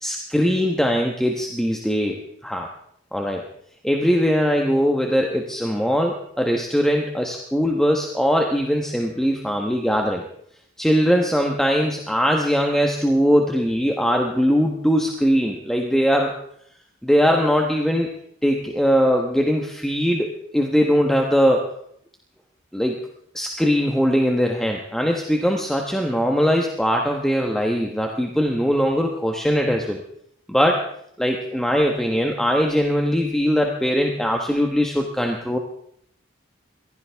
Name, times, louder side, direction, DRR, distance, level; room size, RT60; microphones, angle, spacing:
voice 1, 0.0-2.7 3.1-3.4 3.8-10.2 10.8-16.3 17.0-18.1 18.4-21.7 22.7-23.0 23.3-30.0 30.5-30.8 31.2-35.6, equal, 5° left, 1 dB, 1.1 m, -21 dB
23.0 x 15.5 x 3.5 m, 0.70 s
head